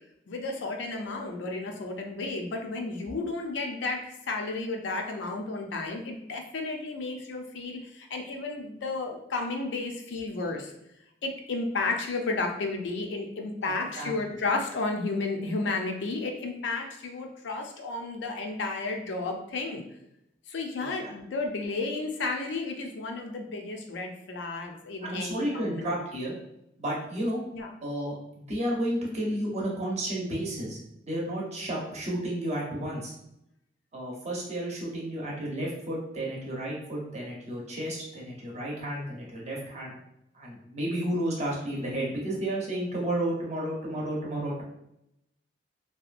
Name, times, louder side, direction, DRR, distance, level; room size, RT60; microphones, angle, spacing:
voice 1, 0.3-10.7 11.2-19.8 20.5-26.0 27.5-27.7 44.6-44.7, left 3 dB, 70° left, 3 dB, 0.4 m, -32 dB
voice 2, 25.0-26.3 26.8-27.4 27.8-30.8 31.1-33.1 33.9-40.0 40.3-44.6, right 1 dB, 40° right, -3 dB, 0.8 m, -32 dB
2.8 x 2.3 x 2.4 m, 0.81 s
head